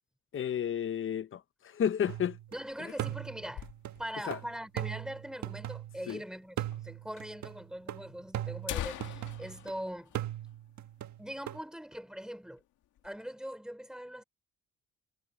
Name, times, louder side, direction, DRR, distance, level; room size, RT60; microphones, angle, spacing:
voice 1, 0.3-2.4 2.8-3.0 4.2-4.4 6.1-6.2, left 9 dB, 45° left, 0.8 m, -32 dB
sound 1, 2.1-2.6 3.0-6.1 6.6-9.7 10.1-11.6, right 13 dB, 70° right, 1.4 m, -39 dB
sound 2, 2.5-4.3 4.6-4.7 4.9-5.0 5.7-5.8 6.7-6.8 7.2-7.3 8.0-8.1 8.4-11.0 11.4-11.5 11.9-12.2 12.6-13.2, left 12 dB, 80° left, 2.0 m, -43 dB
voice 2, 2.5-3.7 4.0-10.1 11.2-12.6 13.0-14.2, equal, ahead, 5.2 m, -42 dB
cardioid pair, 90°, 30 cm